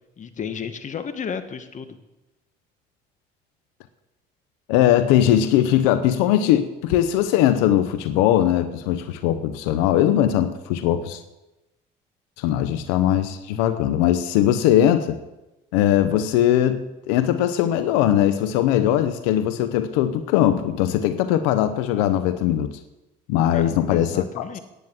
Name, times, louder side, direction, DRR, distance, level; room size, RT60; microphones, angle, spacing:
voice 1, 0.2-2.0 23.5-24.6, left 6 dB, 40° left, 10 dB, 1.3 m, -33 dB
voice 2, 4.7-11.2 12.4-15.2 15.7-22.7 23.3-24.4, left 11 dB, 90° left, 12 dB, 0.7 m, -20 dB
9.9 x 9.1 x 7.7 m, 1.0 s
supercardioid pair, 85°, 19 cm